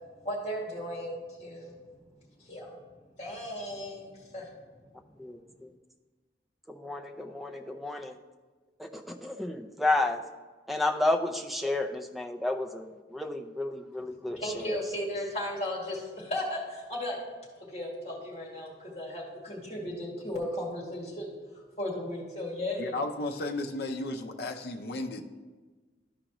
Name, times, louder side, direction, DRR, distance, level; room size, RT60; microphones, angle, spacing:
voice 1, 0.2-1.8 2.4-2.7 3.2-4.5 14.3-17.2 17.6-23.0, left 1 dB, 35° left, -4 dB, 2.0 m, -36 dB
voice 2, 5.2-5.7 6.7-8.2 8.8-10.2 10.7-14.8, left 2 dB, ahead, 5 dB, 0.4 m, -31 dB
voice 3, 22.8-25.3, left 2 dB, 60° left, 3 dB, 0.6 m, -34 dB
12.5 x 5.0 x 3.0 m, 1.4 s
head